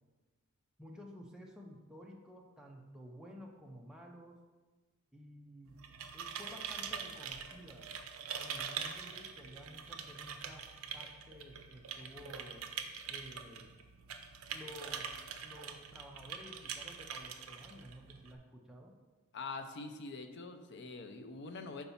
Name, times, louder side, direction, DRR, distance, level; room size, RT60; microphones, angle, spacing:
voice 1, 0.8-4.4 5.1-5.8 6.1-7.9 8.3-12.6 13.1-13.7 14.5-15.1 15.4-18.9, equal, 5° right, -1 dB, 0.4 m, -53 dB
sound 1, 5.7-18.4, right 7 dB, 65° right, 0.5 m, -44 dB
voice 2, 19.3-21.8, left 3 dB, 50° left, 7 dB, 0.5 m, -44 dB
4.5 x 4.0 x 5.6 m, 1.3 s
head